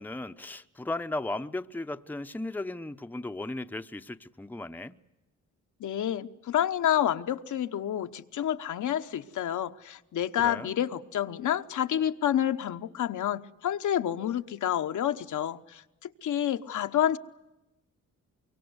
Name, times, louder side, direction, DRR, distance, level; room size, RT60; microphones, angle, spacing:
voice 1, 0.0-5.0 10.4-10.8, left 2 dB, 5° left, 0.8 m, -36 dB
voice 2, 5.8-17.2, left 10 dB, 70° left, 1.1 m, -29 dB
24.5 x 23.0 x 8.0 m
cardioid pair, 80°, 31 cm